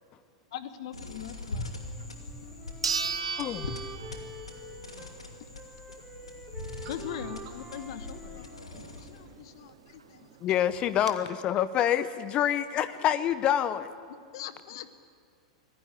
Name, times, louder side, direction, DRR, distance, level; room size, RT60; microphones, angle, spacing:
voice 1, 0.5-1.6 4.1-4.2 6.9-8.4 9.5-9.7 14.3-14.9, left 10 dB, 55° left, 12 dB, 1.2 m, -39 dB
sound 1, 0.9-9.3, left 2 dB, 80° left, 2.5 m, -42 dB
Wind instrument woodwind instrument, 1.7-5.2 5.5-9.6, right 2 dB, 5° right, 4.7 m, -47 dB
sound 2, 2.0-2.1 2.8-4.6 5.0-5.1 9.7-9.8 10.0-10.1 10.7-11.1, right 5 dB, 80° right, 1.6 m, -33 dB
voice 2, 7.9-10.4, right 10 dB, 50° right, 3 dB, 2.8 m, -54 dB
voice 3, 10.4-13.9, left 10 dB, 35° left, 15 dB, 0.8 m, -26 dB
25.0 x 16.5 x 9.9 m, 2.2 s
figure-of-eight pair, 95°, 3 cm